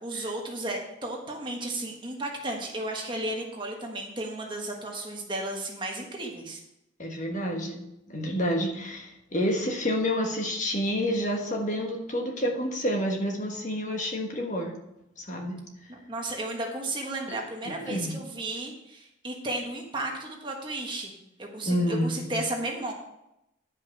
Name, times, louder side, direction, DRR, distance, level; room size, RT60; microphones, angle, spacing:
voice 1, 0.0-6.6 15.9-21.1 21.4-22.9, right 2 dB, 25° right, 0 dB, 1.4 m, -34 dB
voice 2, 7.0-14.7 15.2-15.6 17.3-17.4 17.8-18.1 21.6-22.4, equal, 40° left, 1 dB, 1.4 m, -29 dB
10.5 x 5.5 x 5.9 m, 0.86 s
head